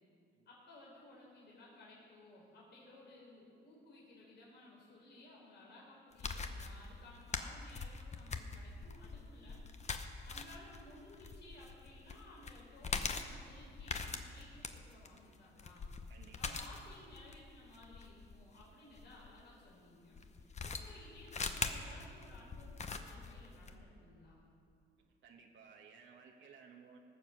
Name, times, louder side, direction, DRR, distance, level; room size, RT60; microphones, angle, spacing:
voice 1, 0.5-9.6 10.2-15.9 16.4-24.4, left 1 dB, 60° left, -4 dB, 3.9 m, -57 dB
sound 1, 6.1-19.3 20.1-23.8, left 4 dB, 35° left, 0.9 m, -42 dB
voice 2, 16.1-16.6 20.8-20.9 25.2-27.0, right 6 dB, 70° right, 1 dB, 1.2 m, -58 dB
18.5 x 7.3 x 6.3 m, 2.4 s
cardioid pair, 90°, 20 cm